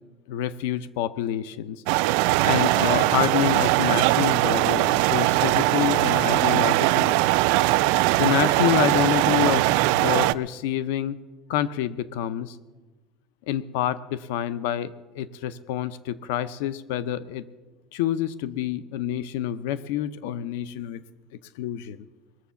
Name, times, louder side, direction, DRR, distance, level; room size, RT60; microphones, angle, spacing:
voice 1, 0.3-1.8 2.4-7.2 8.2-9.6 9.9-11.2 11.5-12.5 13.5-14.9 15.2-17.4 17.9-21.0 21.6-22.0, left 11 dB, 90° left, 15 dB, 0.6 m, -27 dB
sound 1, 1.9-10.3, right 18 dB, 65° right, 0.3 m, -21 dB
21.5 x 7.1 x 6.9 m, 1.2 s
cardioid pair, 175°, 0 cm